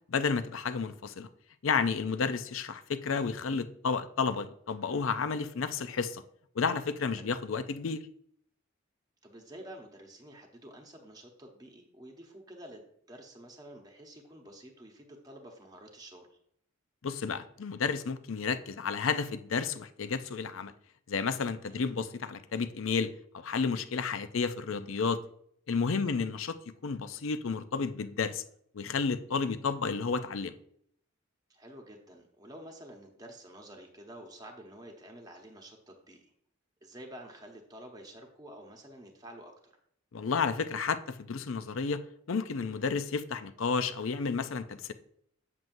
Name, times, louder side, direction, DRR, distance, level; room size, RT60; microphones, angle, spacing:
voice 1, 0.1-1.3 1.6-6.2 6.6-8.0 17.0-20.7 21.1-25.2 25.7-26.5 26.8-28.4 28.7-30.5 40.1-42.0 42.3-44.9, left 5 dB, 75° left, 0.5 m, -31 dB
voice 2, 9.2-16.4 21.7-21.9 26.0-26.2 31.5-36.3 36.8-39.7, right 1 dB, 20° right, 0.9 m, -50 dB
7.7 x 7.4 x 2.6 m
head